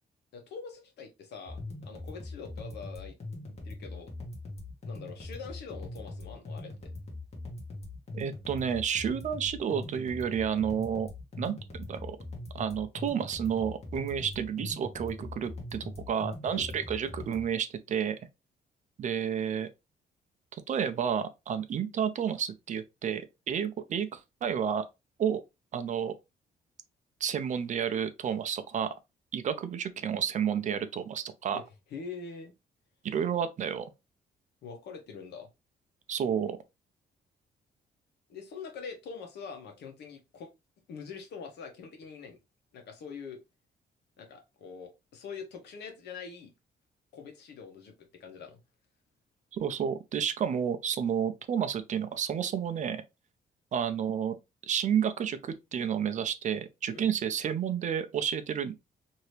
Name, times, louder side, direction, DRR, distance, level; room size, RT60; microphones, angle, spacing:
voice 1, 0.3-3.1 3.6-4.1 4.9-6.9 14.2-14.3 16.5-16.7 31.5-31.6 31.9-32.5 34.6-35.5 38.3-40.5 40.9-42.4 42.7-43.4 44.2-46.5 47.1-48.6 56.9-57.1, left 5 dB, 85° left, 1.0 m, -44 dB
sound 1, 1.5-17.5, left 2 dB, 40° left, 1.2 m, -41 dB
voice 2, 8.1-11.1 11.4-12.2 12.5-18.2 19.0-19.7 20.7-24.9 25.2-25.4 25.7-26.1 27.2-28.9 29.3-31.6 33.0-33.9 36.1-36.6 49.5-53.0 53.7-54.4 54.7-58.7, right 8 dB, 45° right, 0.5 m, -31 dB
2.8 x 2.7 x 3.1 m
cardioid pair, 140°, 17 cm